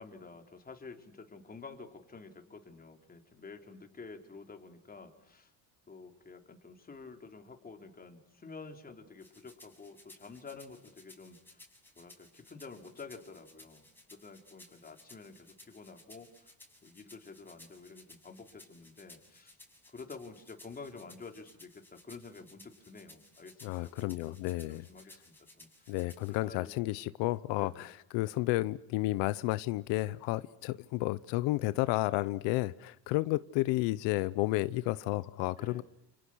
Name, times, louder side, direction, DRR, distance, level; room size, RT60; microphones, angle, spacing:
voice 1, 0.0-5.5 5.9-11.6 12.0-16.5 16.8-19.6 19.9-26.0 26.3-26.8 27.6-27.9 35.6-35.8, left 4 dB, 20° left, 4 dB, 3.9 m, -50 dB
sound 1, 9.2-26.4, left 1 dB, 5° left, 6.7 m, -58 dB
voice 2, 23.6-24.9 25.9-35.8, left 18 dB, 85° left, 16 dB, 0.9 m, -32 dB
29.5 x 29.5 x 6.3 m, 0.82 s
cardioid pair, 140°, 43 cm